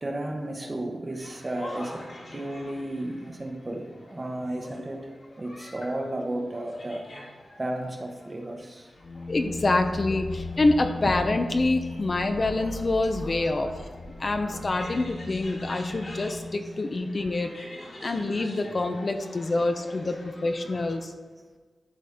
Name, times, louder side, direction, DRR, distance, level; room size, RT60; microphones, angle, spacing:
voice 1, 0.0-5.1 5.4-7.1 7.6-8.9, right 1 dB, 30° right, 3 dB, 0.9 m, -33 dB
sound 1, 1.2-21.0, left 1 dB, 60° left, 2.0 m, -46 dB
sound 2, 8.9-17.5, left 2 dB, 80° left, 0.7 m, -37 dB
voice 2, 9.3-13.7 14.2-17.5 18.0-21.1, left 2 dB, 40° left, 6 dB, 0.6 m, -26 dB
11.5 x 4.2 x 3.6 m, 1.4 s
wide cardioid pair, 110°, 0 cm